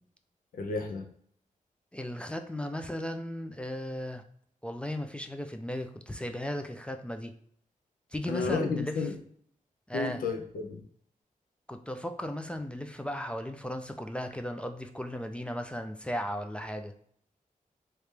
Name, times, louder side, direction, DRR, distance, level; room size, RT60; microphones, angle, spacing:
voice 1, 0.5-1.1 8.3-9.1 9.9-10.8, left 4 dB, 90° left, 4 dB, 0.6 m, -32 dB
voice 2, 1.9-4.2 4.6-7.3 8.1-9.0 9.9-10.2 11.7-16.9, left 1 dB, 10° left, 6 dB, 0.3 m, -36 dB
3.2 x 2.9 x 3.2 m, 0.63 s
wide cardioid pair, 105°, 14 cm